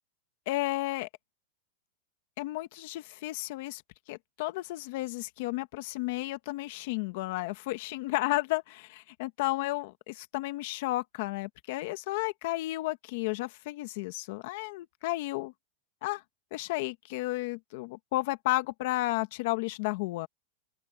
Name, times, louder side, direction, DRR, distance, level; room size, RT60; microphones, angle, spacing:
voice 1, 0.5-1.1 2.4-3.8 4.1-15.5 16.0-16.2 16.5-20.3, left 19 dB, 50° left, 1.5 m, -32 dB
open air
supercardioid pair, 160°, 0 cm